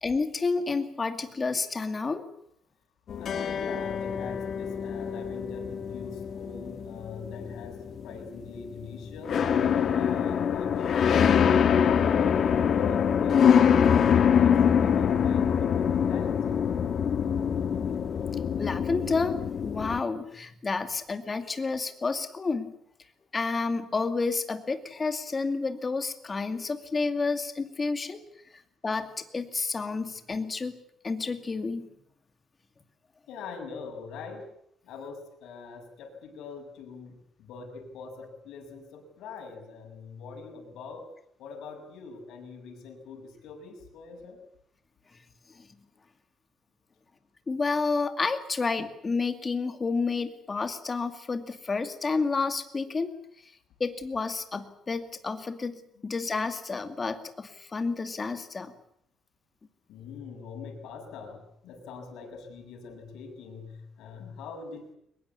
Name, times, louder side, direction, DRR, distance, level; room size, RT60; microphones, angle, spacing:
voice 1, 0.0-2.2 18.6-19.4 19.6-22.7 23.3-28.2 28.8-30.7 31.0-31.9 47.5-53.1 53.8-58.7, left 4 dB, 25° left, 8 dB, 2.3 m, -30 dB
sound 1, 3.1-20.0, left 8 dB, 50° left, 1.7 m, -24 dB
voice 2, 3.2-9.4 9.9-16.4 33.3-34.4 34.9-41.1 41.4-44.4 59.9-65.0, left 4 dB, 85° left, 3 dB, 6.9 m, -43 dB
23.0 x 21.0 x 8.5 m, 0.71 s
cardioid pair, 140°, 0 cm